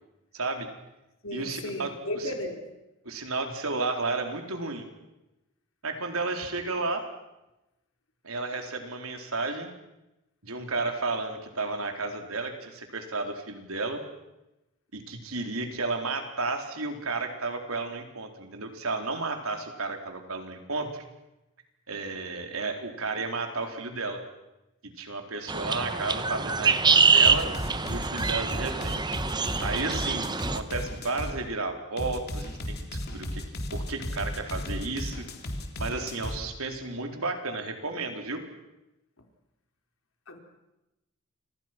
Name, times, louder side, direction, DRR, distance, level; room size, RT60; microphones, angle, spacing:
voice 1, 0.3-0.7 1.3-1.9 3.0-4.9 5.8-7.1 8.2-9.7 10.4-14.0 14.9-21.0 21.9-24.2 24.8-27.5 27.9-29.0 29.6-33.4 33.7-35.3 35.8-38.4, right 3 dB, 75° right, 4 dB, 4.2 m, -32 dB
voice 2, 1.2-2.7 40.3-40.4, left 1 dB, 70° left, 4 dB, 4.2 m, -35 dB
sound 1, 25.5-30.6, right 4 dB, 20° right, 1.0 m, -25 dB
sound 2, 27.2-31.4 32.0-36.4, left 1 dB, 45° left, 3.4 m, -35 dB
30.0 x 26.0 x 6.2 m, 0.97 s
head